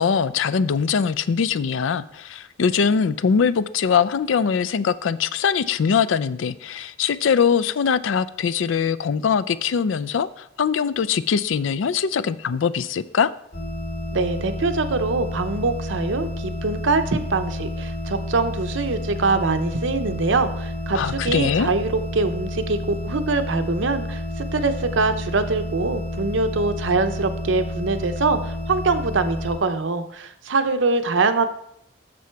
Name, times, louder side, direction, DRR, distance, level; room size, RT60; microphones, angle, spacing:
voice 1, 0.0-13.3 20.9-21.7, left 6 dB, 80° left, 0.4 m, -22 dB
sound 1, 13.5-29.6, left 1 dB, 45° left, 2.1 m, -30 dB
voice 2, 14.1-22.8 23.0-31.5, right 3 dB, 75° right, 0.7 m, -23 dB
7.6 x 6.9 x 4.5 m
head